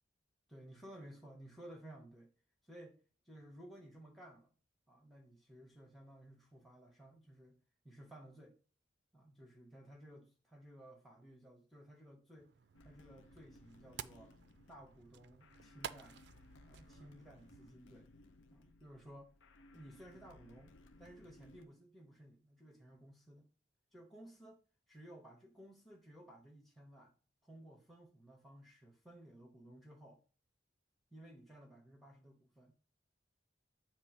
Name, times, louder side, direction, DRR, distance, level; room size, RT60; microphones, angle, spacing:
voice 1, 0.5-2.3 2.6-3.0 3.2-4.5 4.9-7.6 7.8-8.6 9.1-12.5 12.8-14.3 14.7-16.2 16.7-18.1 18.5-19.3 19.7-20.7 21.0-23.5 23.9-27.1 27.4-30.2 31.1-32.7, right 1 dB, ahead, 0.7 m, -56 dB
sound 1, 12.4-17.8, right 8 dB, 60° right, 0.3 m, -53 dB
sound 2, 12.7-21.7, left 2 dB, 85° left, 0.6 m, -62 dB
8.2 x 3.1 x 5.0 m
head